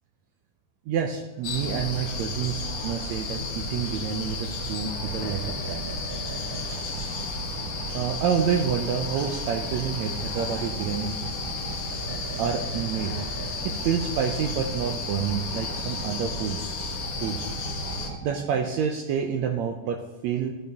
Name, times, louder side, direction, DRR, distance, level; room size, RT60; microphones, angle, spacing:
voice 1, 0.9-5.9 7.9-11.2 12.4-13.2 13.6-16.6 17.2-17.4 18.2-20.5, right 7 dB, 80° right, 4 dB, 1.6 m, -28 dB
sound 1, 1.4-18.1, left 2 dB, 60° left, 1.7 m, -32 dB
sound 2, 5.0-18.7, right 4 dB, 65° right, 1.6 m, -42 dB
13.5 x 6.7 x 2.9 m, 1.2 s
omnidirectional pair, 3.8 m